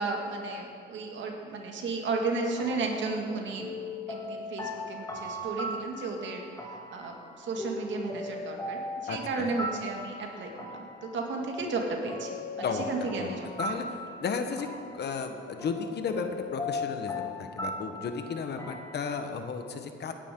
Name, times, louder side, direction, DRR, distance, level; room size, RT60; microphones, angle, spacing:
voice 1, 0.0-3.7 4.1-6.4 6.9-13.8, right 3 dB, 70° right, 1 dB, 2.1 m, -33 dB
sound 1, 2.2-19.4, left 2 dB, 20° left, 2.1 m, -39 dB
voice 2, 9.1-9.5 12.6-12.8 13.2-13.8 14.2-14.7 14.9-20.1, left 5 dB, 55° left, 7 dB, 1.2 m, -34 dB
17.5 x 10.0 x 3.8 m, 2.4 s
cardioid pair, 90°, 20 cm